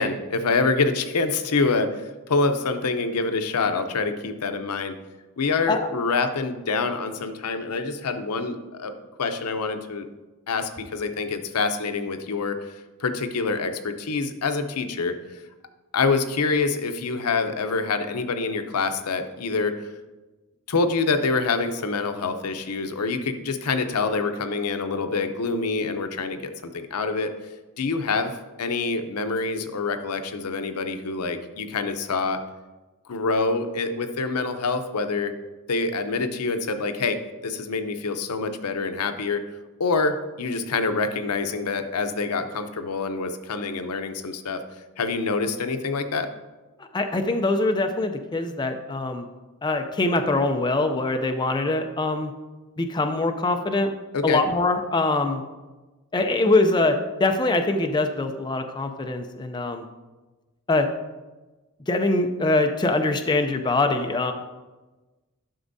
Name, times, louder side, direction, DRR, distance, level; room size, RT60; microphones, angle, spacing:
voice 1, 0.0-5.0 5.4-10.1 10.5-12.6 13.0-15.2 15.9-19.8 20.7-27.3 27.8-32.4 33.1-35.3 35.7-39.4 39.8-44.6 45.0-46.3 54.1-54.4, left 4 dB, 90° left, 8 dB, 0.6 m, -26 dB
voice 2, 46.9-49.3 49.6-52.3 52.8-53.9 54.2-55.4 56.1-59.8 60.7-60.9 61.9-64.3, left 2 dB, 20° left, 5 dB, 0.4 m, -23 dB
11.5 x 6.1 x 2.7 m, 1.2 s
head